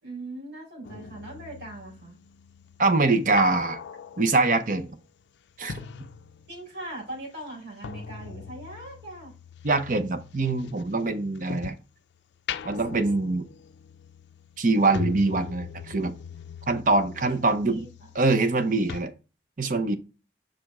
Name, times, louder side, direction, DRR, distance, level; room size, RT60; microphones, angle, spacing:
voice 1, 0.0-2.2 6.5-9.3 17.2-17.9, right 2 dB, 75° right, 4.1 m, -40 dB
sound 1, 0.8-6.8 7.1-11.9 12.3-18.6 18.9-19.0, left 6 dB, 80° left, 0.4 m, -40 dB
voice 2, 2.8-3.8 4.2-4.9 5.6-5.7 9.6-11.8 12.6-13.5 14.6-16.1 16.7-17.9 18.1-19.1 19.6-20.0, right 3 dB, 45° right, 0.7 m, -24 dB
5.8 x 5.0 x 3.6 m
head